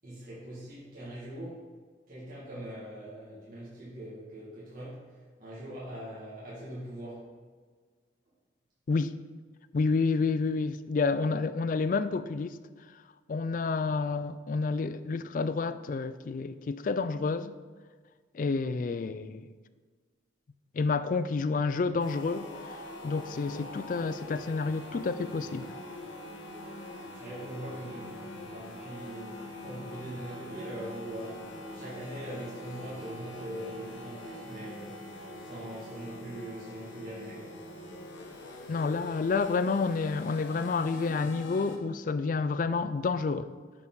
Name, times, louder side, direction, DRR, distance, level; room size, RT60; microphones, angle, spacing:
voice 1, 0.0-1.7 2.1-5.0 5.4-7.2 27.2-28.1 28.5-29.3 29.6-35.0 35.4-37.6, right 1 dB, 50° right, 2.1 m, -42 dB
voice 2, 9.7-12.6 13.3-17.5 18.3-19.5 20.7-22.5 23.0-25.7 38.7-43.5, left 4 dB, 45° left, 0.3 m, -29 dB
sound 1, 22.0-41.8, left 1 dB, 85° left, 1.1 m, -44 dB
7.1 x 6.6 x 4.0 m
head